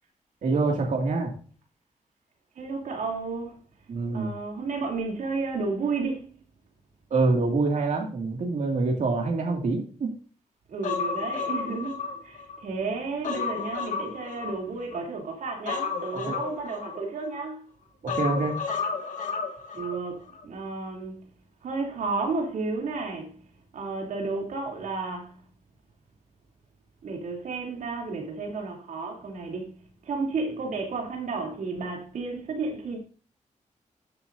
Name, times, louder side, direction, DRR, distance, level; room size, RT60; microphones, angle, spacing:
voice 1, 0.4-1.3 3.9-4.3 7.1-10.1 16.2-16.4 18.0-18.6, right 3 dB, 75° right, 2.2 m, -25 dB
voice 2, 2.5-3.6 4.1-6.3 10.7-17.6 19.7-21.3 21.6-23.4 23.7-25.4 27.0-33.0, right 4 dB, 90° right, 3.0 m, -32 dB
Human voice, 10.8-12.6 13.0-15.0 15.7-17.4 18.1-20.0 20.3-20.4, left 5 dB, 80° left, 1.8 m, -32 dB
14.0 x 7.7 x 2.6 m
cardioid pair, 85°, 13 cm